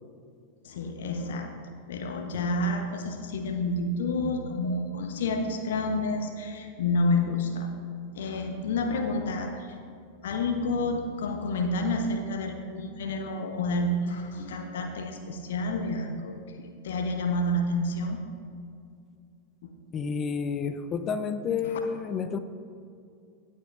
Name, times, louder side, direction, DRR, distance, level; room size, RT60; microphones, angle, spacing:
voice 1, 0.6-7.7 8.1-9.7 10.2-18.2 19.6-19.7 21.6-21.8, left 2 dB, 60° left, 5 dB, 0.8 m, -29 dB
voice 2, 19.9-22.4, left 6 dB, 25° left, 11 dB, 0.5 m, -30 dB
17.5 x 7.3 x 2.4 m, 2.4 s
figure-of-eight pair, 90°, 0 cm